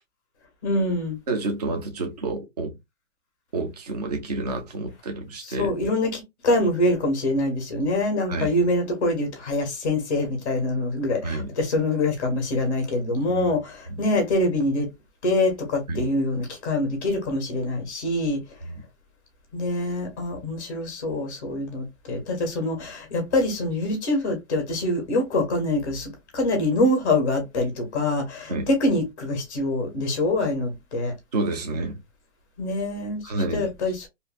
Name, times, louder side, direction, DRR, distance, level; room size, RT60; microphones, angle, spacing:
voice 1, 0.6-1.2 5.4-14.9 15.2-18.4 19.5-31.1 32.6-34.1, left 1 dB, 15° left, 0.5 m, -25 dB
voice 2, 1.3-2.7 3.5-5.7 8.3-8.5 11.2-11.5 13.3-13.5 13.9-14.0 15.9-16.1 18.6-18.8 28.5-28.7 31.3-32.0 33.2-33.7, right 2 dB, 30° right, 0.4 m, -29 dB
3.0 x 2.6 x 2.3 m
hypercardioid pair, 175°, 39 cm